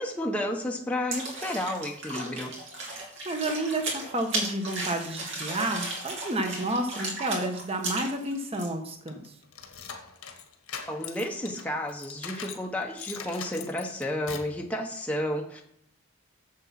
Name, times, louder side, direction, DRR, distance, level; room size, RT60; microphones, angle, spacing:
voice 1, 0.0-2.6 10.9-15.6, left 1 dB, 5° left, 1 dB, 0.9 m, -31 dB
Splashes and drips, 1.1-8.7, right 2 dB, 60° right, 2.8 m, -35 dB
voice 2, 2.8-9.3, right 1 dB, 25° right, 5 dB, 1.3 m, -31 dB
sound 1, 9.1-12.7 13.0-14.6, left 7 dB, 85° left, 1.5 m, -41 dB
7.6 x 7.5 x 5.9 m, 0.69 s
head